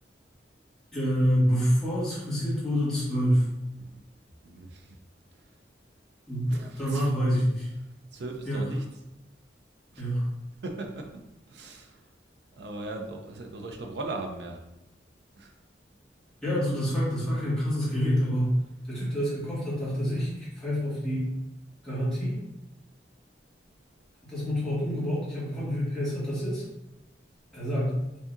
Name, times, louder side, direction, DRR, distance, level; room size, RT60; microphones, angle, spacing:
voice 1, 0.9-3.4 6.3-7.7 8.4-8.7 10.0-10.2 16.4-18.6 18.9-20.3 20.6-21.3 21.8-22.4 24.2-26.6 27.5-28.0, equal, 5° left, -10 dB, 1.5 m, -27 dB
voice 2, 4.4-5.0 6.5-7.4 8.1-9.0 9.9-10.1 10.6-12.0 12.6-14.6 15.4-15.5, right 2 dB, 65° right, 3 dB, 0.5 m, -39 dB
4.9 x 2.7 x 2.6 m, 0.90 s
head